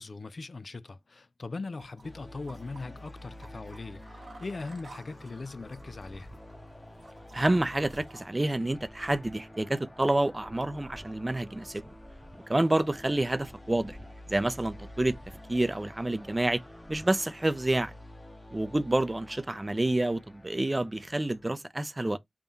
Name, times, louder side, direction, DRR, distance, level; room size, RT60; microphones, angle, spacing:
voice 1, 0.0-6.3, left 3 dB, 60° left, 0.3 m, -40 dB
sound 1, 1.8-8.2, right 2 dB, 85° right, 1.2 m, -54 dB
sound 2, 2.0-21.5, left 1 dB, 30° left, 1.1 m, -50 dB
sound 3, 5.3-17.3, equal, ahead, 1.0 m, -53 dB
voice 2, 7.3-11.9 12.5-14.0 14.3-15.1 15.5-16.6 16.9-17.9 18.5-22.2, right 1 dB, 30° right, 0.5 m, -28 dB
3.6 x 2.2 x 3.9 m
cardioid pair, 45°, 0 cm